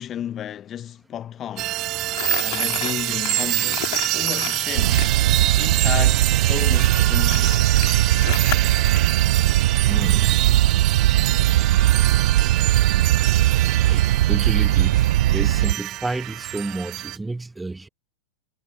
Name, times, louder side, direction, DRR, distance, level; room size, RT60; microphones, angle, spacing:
voice 1, 0.0-1.8 2.4-5.0 5.6-7.6, left 10 dB, 30° left, 0.9 m, -33 dB
sound 1, 1.6-17.2, right 16 dB, 35° right, 0.3 m, -26 dB
Crumpling crinkling, 2.1-5.1 6.8-9.0, left 24 dB, 50° left, 2.2 m, -32 dB
sound 2, 4.8-15.7, right 14 dB, 55° right, 0.7 m, -19 dB
voice 2, 9.9-10.4 13.8-17.9, right 2 dB, 10° right, 1.6 m, -31 dB
figure-of-eight pair, 90°, 0 cm